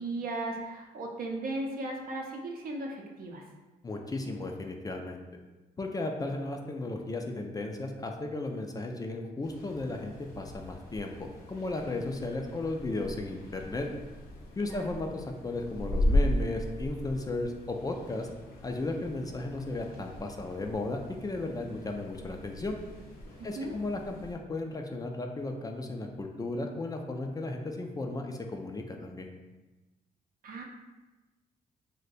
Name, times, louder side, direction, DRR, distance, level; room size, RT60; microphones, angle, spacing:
voice 1, 0.0-3.4 14.6-14.8 23.4-23.8 30.4-30.6, right 2 dB, 65° right, 1 dB, 0.6 m, -36 dB
voice 2, 3.8-5.2 5.8-11.1 11.5-13.9 14.6-18.3 18.6-22.8 23.4-29.3, left 2 dB, 25° left, 3 dB, 0.3 m, -35 dB
sound 1, 9.4-24.4, left 1 dB, 75° left, 0.7 m, -36 dB
2.6 x 2.1 x 3.9 m, 1.1 s
cardioid pair, 80°, 16 cm